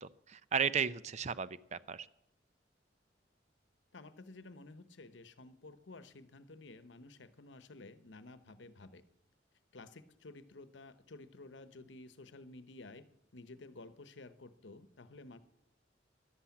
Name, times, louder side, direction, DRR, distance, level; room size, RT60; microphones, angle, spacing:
voice 1, 0.0-2.1, right 6 dB, 40° right, 16 dB, 0.5 m, -35 dB
voice 2, 3.9-9.0 9.7-13.0 13.3-15.4, left 2 dB, 80° left, 13 dB, 0.9 m, -53 dB
11.5 x 11.5 x 8.4 m, 0.81 s
head